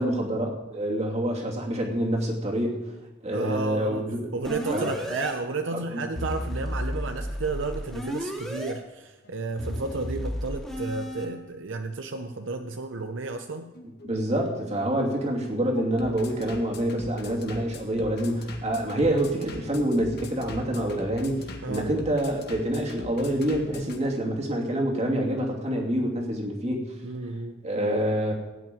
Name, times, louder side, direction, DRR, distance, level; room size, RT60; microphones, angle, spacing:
voice 1, 0.0-2.8 3.2-4.3 4.7-4.9 5.7-6.0 14.0-26.9 27.6-28.3, right 1 dB, 35° right, 0 dB, 2.7 m, -27 dB
voice 2, 3.3-4.0 4.3-13.7 21.6-21.9 27.0-27.5, right 3 dB, 70° right, 7 dB, 0.7 m, -32 dB
sound 1, 4.4-5.3 6.2-8.7 9.6-11.3, equal, ahead, 2.5 m, -33 dB
Bass drum, 8.0-24.0, left 2 dB, 55° left, 2.2 m, -44 dB
17.0 x 5.9 x 9.1 m, 1.1 s
head